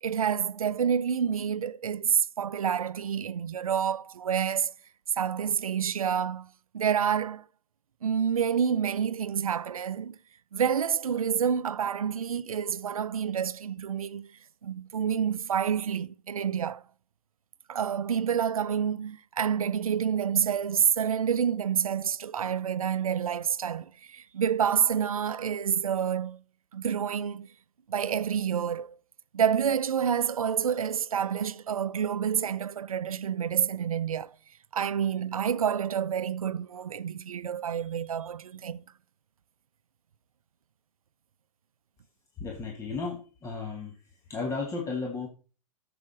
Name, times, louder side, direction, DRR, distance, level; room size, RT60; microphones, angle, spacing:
voice 1, 0.0-4.7 5.1-7.5 8.0-10.2 10.5-16.8 17.7-26.4 26.7-27.5 27.9-29.0 29.3-34.4 34.7-38.8, right 8 dB, 80° right, 0.5 m, -28 dB
voice 2, 42.4-43.9 44.3-45.3, left 4 dB, 15° left, 1.4 m, -34 dB
11.5 x 7.1 x 4.4 m
figure-of-eight pair, 110°, 18 cm